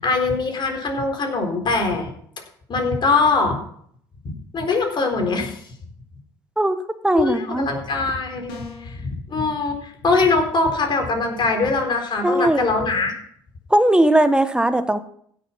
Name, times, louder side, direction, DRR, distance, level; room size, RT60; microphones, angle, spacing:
voice 1, 0.0-2.1 2.7-3.6 4.5-5.6 7.2-13.1, left 3 dB, 40° left, 3 dB, 4.0 m, -22 dB
voice 2, 7.0-7.7 12.2-12.7 13.7-15.0, right 1 dB, 5° right, 10 dB, 1.4 m, -18 dB
sound 1, 8.5-9.0, left 3 dB, 75° left, 3.0 m, -37 dB
15.5 x 7.1 x 5.8 m, 0.65 s
hypercardioid pair, 60°, 12 cm